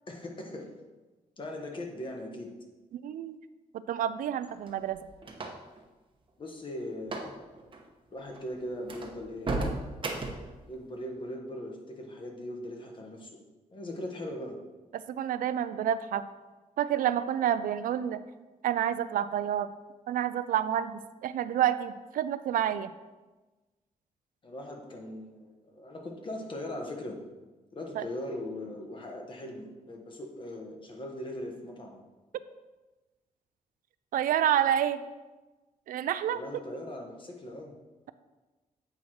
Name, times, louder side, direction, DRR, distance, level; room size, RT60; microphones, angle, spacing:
voice 1, 0.1-0.7 1.4-2.5 6.4-7.5 8.1-9.5 10.7-13.4 13.7-14.6 24.4-27.2 27.7-32.0 36.3-37.7, left 1 dB, 35° left, 1 dB, 1.3 m, -39 dB
voice 2, 3.0-3.4 3.7-5.1 14.9-16.2 16.8-18.2 18.6-19.7 20.1-22.9 28.0-28.1 34.1-35.0 35.9-36.4, right 10 dB, 80° right, 13 dB, 0.4 m, -29 dB
sound 1, 4.4-5.8 7.0-7.3 7.6-7.8 8.3-8.4 8.9-10.5, right 2 dB, 35° right, 1.0 m, -34 dB
8.5 x 4.7 x 4.3 m, 1.2 s
cardioid pair, 120°, 14 cm